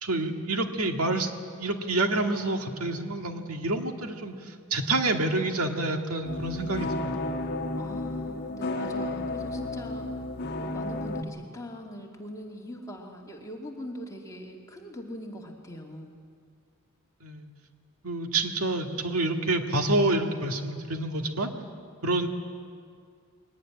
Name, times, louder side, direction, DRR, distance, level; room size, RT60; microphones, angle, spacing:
voice 1, 0.0-1.3 1.6-7.3 17.2-17.5 18.0-21.5 22.0-22.3, right 2 dB, 75° right, 4 dB, 2.0 m, -28 dB
sound 1, 6.2-11.2, left 2 dB, 50° left, 1.5 m, -32 dB
voice 2, 7.8-10.2 10.5-16.2, equal, 15° left, -1 dB, 2.5 m, -41 dB
22.5 x 18.0 x 9.9 m, 2.2 s
head